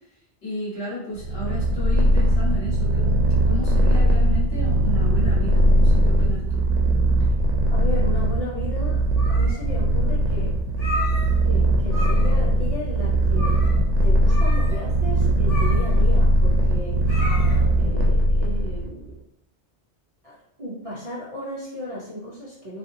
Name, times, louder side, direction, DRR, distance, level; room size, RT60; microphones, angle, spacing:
voice 1, 0.4-3.1 3.4-6.6, left 1 dB, 60° left, -6 dB, 1.2 m, -33 dB
Purr, 1.2-18.9, right 1 dB, 85° right, 0.9 m, -20 dB
voice 2, 7.7-10.6 11.4-13.6 14.0-17.2 17.7-19.1 20.2-22.8, left 1 dB, 40° right, -7 dB, 0.6 m, -35 dB
sound 1, 9.0-9.8 10.2-10.3 10.7-11.6 11.8-12.5 12.8-12.9 13.3-13.8 14.3-17.8, left 2 dB, 40° left, 0.7 m, -34 dB
2.7 x 2.5 x 2.5 m, 0.76 s
omnidirectional pair, 1.2 m